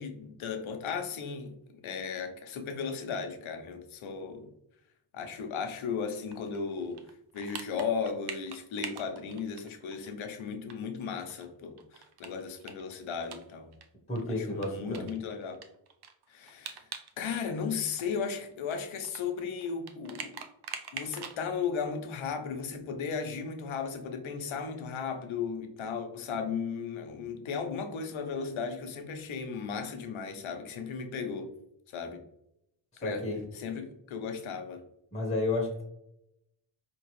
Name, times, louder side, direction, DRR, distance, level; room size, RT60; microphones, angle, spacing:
voice 1, 0.0-4.5 5.1-7.0 7.3-13.7 14.4-15.6 16.3-16.8 17.2-20.4 20.9-31.5 31.9-32.2 33.0-33.3 33.5-34.8, left 6 dB, 75° left, 5 dB, 0.8 m, -35 dB
sound 1, 6.3-10.1 10.4-10.5 10.7-10.8 11.2-13.9 14.2-14.3 14.6-17.1 17.4-21.4, right 7 dB, 55° right, 0.6 m, -44 dB
voice 2, 14.1-15.0 33.0-33.4 35.1-35.8, left 2 dB, 15° left, -1 dB, 1.1 m, -31 dB
4.4 x 2.9 x 3.1 m, 0.79 s
cardioid pair, 115°, 48 cm